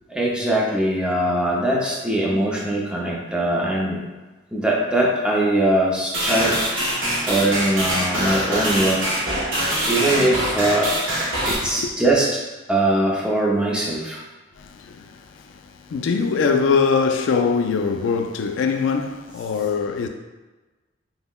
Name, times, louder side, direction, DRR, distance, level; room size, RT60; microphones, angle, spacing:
voice 1, 0.1-4.0 4.5-9.0 9.9-10.9 11.4-12.4 12.7-14.2, right 1 dB, 5° right, 0.5 m, -21 dB
sound 1, 6.1-11.6, equal, 75° right, 0.9 m, -23 dB
voice 2, 11.3-11.9 14.6-20.1, left 5 dB, 70° left, 0.3 m, -23 dB
5.4 x 2.1 x 2.2 m
head